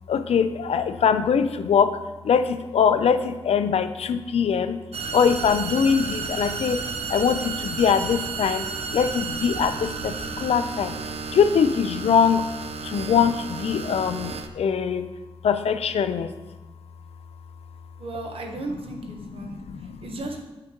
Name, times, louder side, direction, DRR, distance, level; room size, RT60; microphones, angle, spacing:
voice 1, 0.1-2.0 2.2-4.8 5.1-6.8 7.1-10.9 11.3-12.4 12.8-15.0 15.4-16.3 19.4-20.0, left 7 dB, 85° left, 11 dB, 0.4 m, -22 dB
sound 1, 4.9-14.5, right 5 dB, 85° right, 0.5 m, -32 dB
voice 2, 18.0-19.6 20.0-20.4, right 2 dB, 65° right, 3 dB, 1.0 m, -34 dB
7.7 x 5.8 x 3.0 m, 1.1 s
wide cardioid pair, 130°, 10 cm